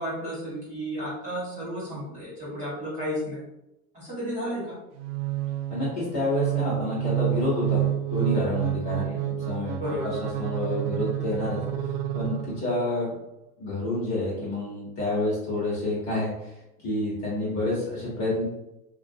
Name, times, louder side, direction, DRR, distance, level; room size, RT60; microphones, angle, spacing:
voice 1, 0.0-3.4 3.9-4.8 9.0-9.2 9.8-10.1, equal, 15° right, -9 dB, 1.2 m, -33 dB
sound 1, 5.0-12.9, right 13 dB, 75° right, 0.6 m, -29 dB
voice 2, 5.7-7.8 8.1-10.1 10.4-11.6 12.1-13.2 13.6-16.3 16.8-18.4, left 2 dB, 35° left, -6 dB, 1.1 m, -28 dB
2.5 x 2.3 x 2.7 m, 0.90 s
supercardioid pair, 140°, 46 cm